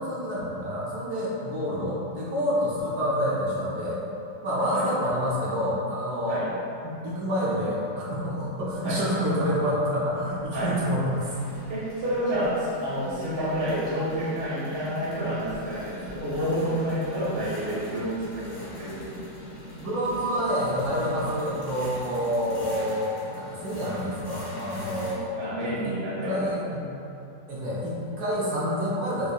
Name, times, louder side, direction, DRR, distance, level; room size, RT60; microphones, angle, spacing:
voice 1, 0.0-4.0 4.4-6.4 6.8-11.3 19.8-25.3 25.6-25.9 26.2-26.9 27.5-29.3, equal, 70° right, -7 dB, 1.0 m, -28 dB
sound 1, 10.2-25.1, left 1 dB, 85° left, 1.6 m, -41 dB
voice 2, 11.7-19.2 25.4-26.6, equal, 45° right, -9 dB, 0.3 m, -29 dB
4.6 x 2.6 x 2.3 m, 2.8 s
omnidirectional pair, 2.0 m